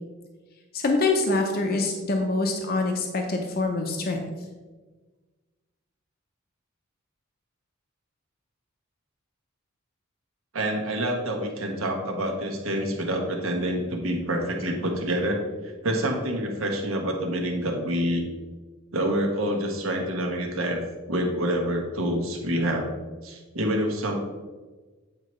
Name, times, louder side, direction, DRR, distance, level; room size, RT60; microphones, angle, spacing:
voice 1, 0.7-4.2, left 3 dB, 50° left, 3 dB, 0.7 m, -25 dB
voice 2, 10.5-15.4 15.8-18.2 18.9-20.8 21.1-22.9 23.2-24.1, right 1 dB, 85° right, 2 dB, 1.2 m, -27 dB
8.7 x 4.6 x 3.1 m, 1.3 s
head